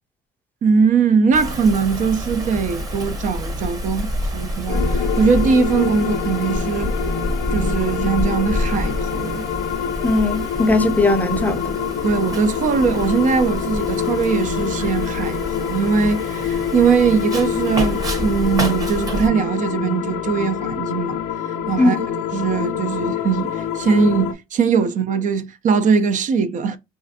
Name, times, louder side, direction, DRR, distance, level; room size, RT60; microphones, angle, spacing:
voice 1, 0.6-6.9 7.5-9.5 12.0-21.2 21.7-22.0 22.3-26.8, right 5 dB, 50° right, 0.4 m, -20 dB
Wind, 1.3-19.3, equal, 20° right, 0.9 m, -28 dB
sound 1, 4.7-24.3, left 8 dB, 90° left, 0.4 m, -26 dB
voice 2, 10.0-11.8 21.8-22.1, left 2 dB, 10° left, 0.5 m, -19 dB
3.2 x 2.4 x 2.6 m
cardioid pair, 110°, 17 cm